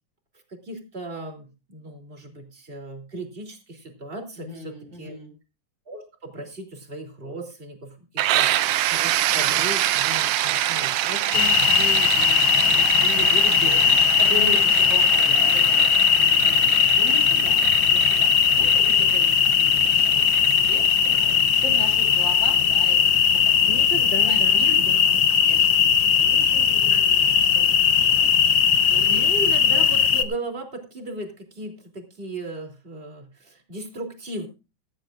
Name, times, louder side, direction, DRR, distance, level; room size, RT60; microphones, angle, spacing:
voice 1, 0.5-5.1 5.9-14.0 16.4-16.6 23.7-25.3 29.1-34.5, right 1 dB, 20° right, 3 dB, 3.0 m, -36 dB
voice 2, 4.4-5.3 13.7-13.8 14.2-15.9 16.2-23.9 24.3-24.9 25.3-25.9 26.1-29.3, right 1 dB, 35° right, 3 dB, 5.2 m, -39 dB
sound 1, 8.2-23.8, right 13 dB, 80° right, 1.3 m, -27 dB
sound 2, 11.3-30.2, left 7 dB, 65° left, 1.1 m, -19 dB
16.5 x 15.0 x 2.5 m, 0.29 s
omnidirectional pair, 3.6 m